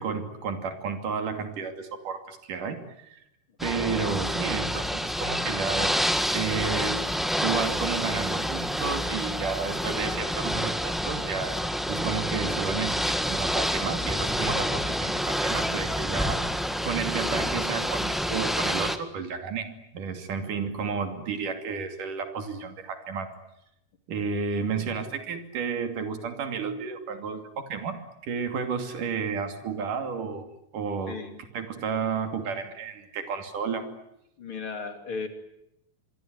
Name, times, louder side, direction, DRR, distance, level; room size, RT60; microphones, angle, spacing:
voice 1, 0.0-3.2 3.6-6.0 6.3-7.1 7.4-16.5 16.8-23.3 24.1-30.5 30.7-31.2 31.5-33.9, right 5 dB, 85° right, 7 dB, 4.3 m, -32 dB
Ocean / Boat Water vehicle, 3.6-19.0, equal, ahead, 0.5 m, -28 dB
voice 2, 31.1-31.4 34.4-35.3, left 4 dB, 45° left, 7 dB, 3.4 m, -36 dB
26.0 x 22.5 x 9.5 m, 0.81 s
omnidirectional pair, 3.6 m